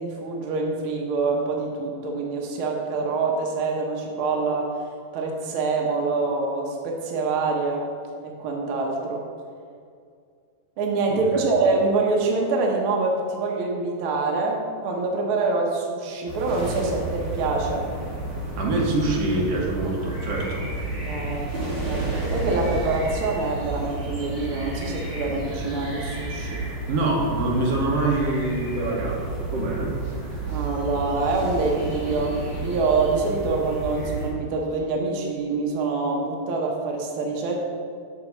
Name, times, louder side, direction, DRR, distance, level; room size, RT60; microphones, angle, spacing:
voice 1, 0.0-4.7 5.1-7.9 8.2-9.2 10.8-17.9 21.0-26.6 30.5-37.6, right 3 dB, 85° right, 0 dB, 1.1 m, -25 dB
sound 1, 16.3-34.3, right 2 dB, 35° right, 2.5 m, -31 dB
voice 2, 18.6-20.7 26.9-29.9, right 2 dB, 60° right, -2 dB, 1.9 m, -25 dB
6.0 x 5.2 x 6.5 m, 2.2 s
omnidirectional pair, 3.7 m